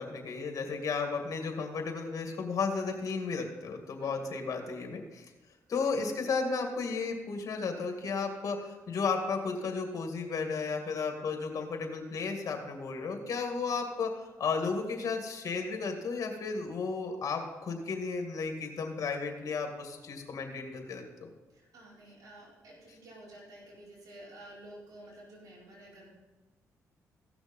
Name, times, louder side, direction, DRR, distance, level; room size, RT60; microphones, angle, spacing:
voice 1, 0.0-5.3 5.7-21.3, left 4 dB, 55° left, 4 dB, 2.0 m, -34 dB
voice 2, 21.5-26.1, right 1 dB, 65° right, -6 dB, 4.7 m, -51 dB
16.0 x 6.2 x 5.4 m, 1.2 s
cardioid pair, 70°, 7 cm